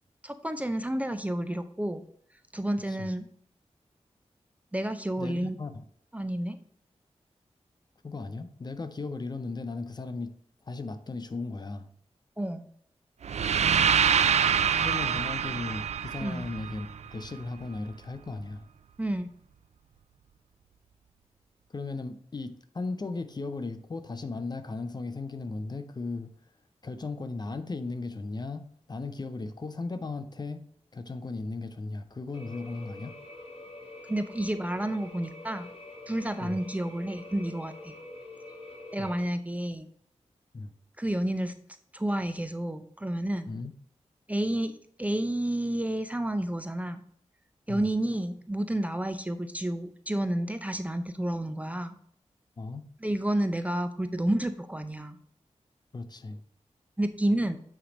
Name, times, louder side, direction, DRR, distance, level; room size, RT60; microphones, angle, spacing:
voice 1, 0.2-2.0 2.5-3.3 4.7-5.6 6.1-6.6 12.4-12.6 16.2-16.4 19.0-19.3 34.1-35.7 36.1-37.9 38.9-39.9 41.0-41.5 41.9-43.5 44.3-47.0 47.7-52.0 53.0-55.2 57.0-57.6, right 1 dB, 10° right, 0.5 m, -30 dB
voice 2, 5.2-5.7 8.0-10.3 10.7-11.9 14.8-18.7 21.7-26.3 26.8-30.6 30.9-33.2 36.4-36.6 39.0-39.1 40.5-40.7 43.5-43.7 47.7-47.9 52.6-52.9 55.9-56.4, left 3 dB, 35° left, 0.6 m, -36 dB
sound 1, 13.2-17.3, right 7 dB, 70° right, 0.4 m, -25 dB
sound 2, 32.3-39.2, left 2 dB, 55° left, 2.1 m, -46 dB
8.7 x 3.3 x 5.1 m
wide cardioid pair, 100°, 12 cm